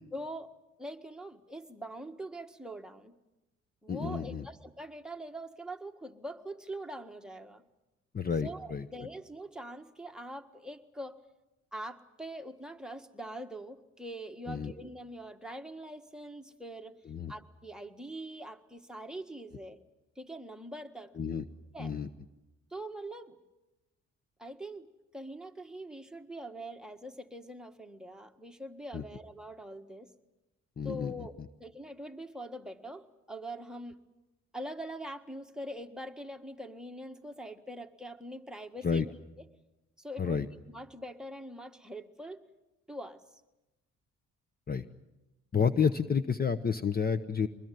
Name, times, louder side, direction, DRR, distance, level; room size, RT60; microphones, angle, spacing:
voice 1, 0.1-0.5 0.8-3.1 3.8-7.6 8.4-11.2 11.7-17.0 17.3-19.8 20.2-21.1 21.7-21.9 22.7-23.4 24.4-24.9 25.1-30.1 30.8-31.3 31.6-34.0 34.5-39.4 40.0-42.4 42.9-43.2, right 1 dB, ahead, 4 dB, 1.7 m, -43 dB
voice 2, 3.9-4.4 8.1-8.8 14.5-14.7 17.1-17.3 21.2-21.4 21.8-22.1 28.9-29.0 30.8-31.3 38.8-39.0 40.2-40.4 44.7-44.8 45.5-47.5, left 6 dB, 30° left, 12 dB, 0.9 m, -30 dB
24.5 x 20.5 x 9.3 m, 1.0 s
cardioid pair, 90°, 30 cm